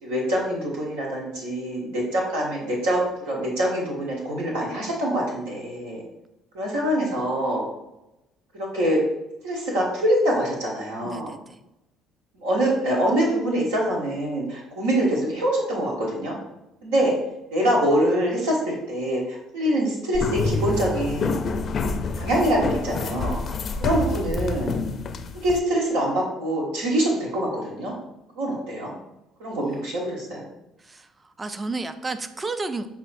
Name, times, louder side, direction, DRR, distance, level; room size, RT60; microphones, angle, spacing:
voice 1, 0.0-6.0 6.5-7.6 8.5-9.0 9.4-11.3 12.4-16.4 16.8-17.1 17.5-21.3 22.1-23.4 23.8-24.7 25.3-27.9 28.3-28.9 29.4-30.4, right 1 dB, 85° right, -3 dB, 1.1 m, -24 dB
voice 2, 11.0-11.6 23.5-23.6 29.5-29.8 30.8-32.9, right 3 dB, 25° right, 10 dB, 0.5 m, -33 dB
sound 1, 20.1-25.6, left 3 dB, 50° left, 0.4 m, -27 dB
7.3 x 2.8 x 2.6 m, 0.91 s
hypercardioid pair, 65°, 0 cm